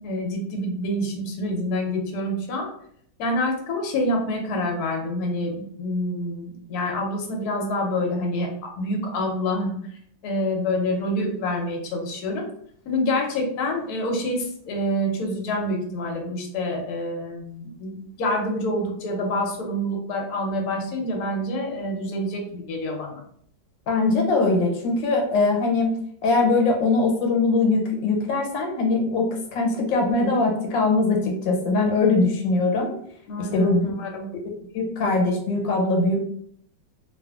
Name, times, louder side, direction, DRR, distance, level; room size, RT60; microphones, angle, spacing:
voice 1, 0.0-2.7 3.2-9.7 10.2-12.4 12.9-23.2 33.3-34.3, left 1 dB, 65° left, 1 dB, 1.1 m, -27 dB
voice 2, 23.9-32.9 33.4-33.9 34.7-36.2, left 3 dB, 90° left, 1 dB, 1.4 m, -21 dB
2.9 x 2.5 x 2.3 m, 0.65 s
omnidirectional pair, 2.0 m